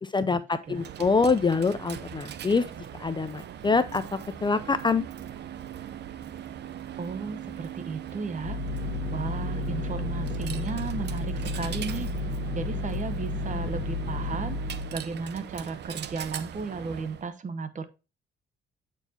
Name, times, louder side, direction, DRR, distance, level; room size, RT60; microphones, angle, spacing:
voice 1, 0.0-2.7 3.0-4.0 4.4-5.0, left 4 dB, 25° left, 12 dB, 0.5 m, -25 dB
Coin (dropping), 0.6-17.3, right 9 dB, 60° right, 0.7 m, -40 dB
voice 2, 7.0-8.8 9.1-14.6 14.9-17.9, right 4 dB, 40° right, 12 dB, 1.0 m, -35 dB
sound 1, 8.4-15.0, left 2 dB, 50° left, 1.1 m, -32 dB
7.9 x 4.6 x 2.7 m, 0.29 s
cardioid pair, 90°, 20 cm